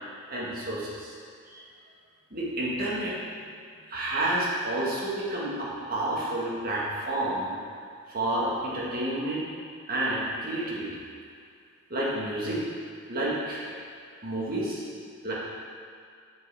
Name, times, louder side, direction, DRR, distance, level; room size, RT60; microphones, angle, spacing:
voice 1, 0.3-1.1 1.5-1.6 2.3-3.5 3.9-7.6 8.1-9.4 9.9-11.0 11.9-12.7 13.1-13.7 14.2-14.8 15.2-15.3, right 1 dB, 50° right, -6 dB, 1.7 m, -30 dB
7.9 x 6.5 x 3.5 m, 2.3 s
head